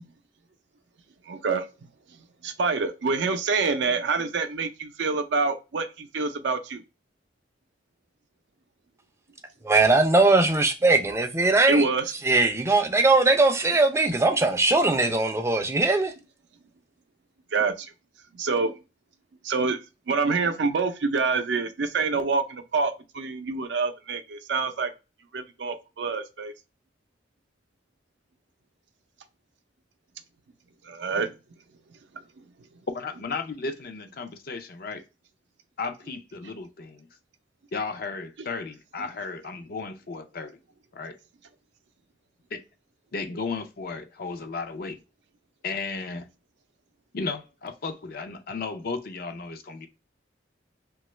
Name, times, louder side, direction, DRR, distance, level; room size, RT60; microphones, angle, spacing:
voice 1, 1.3-1.7 2.4-6.8 11.7-12.0 17.5-17.7 18.3-18.7 19.4-19.8 20.1-24.9 25.3-26.5 30.8-31.3 38.4-38.5, right 4 dB, 70° right, 0.5 m, -26 dB
voice 2, 9.6-11.8 12.2-16.1, right 3 dB, 15° right, 0.4 m, -20 dB
voice 3, 32.9-35.0 35.8-37.1 37.7-40.6 40.9-41.2 42.5-42.6 43.1-45.0 45.6-46.3 47.1-49.9, left 4 dB, 55° left, 0.5 m, -34 dB
3.0 x 2.3 x 3.0 m
head